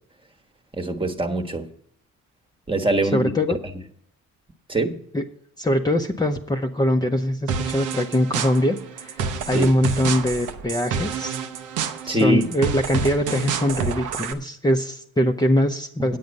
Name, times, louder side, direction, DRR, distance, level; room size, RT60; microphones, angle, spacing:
voice 1, 0.7-1.7 2.7-3.3 4.7-5.0 9.5-9.7 12.1-12.4, right 1 dB, 15° right, 4 dB, 1.3 m, -23 dB
voice 2, 3.1-3.6 5.1-5.2 5.6-11.4 12.0-16.2, left 1 dB, 15° left, 3 dB, 0.8 m, -22 dB
sound 1, 7.5-14.3, right 6 dB, 85° right, 0.9 m, -28 dB
9.3 x 8.6 x 5.3 m, 0.65 s
cardioid pair, 90°, 30 cm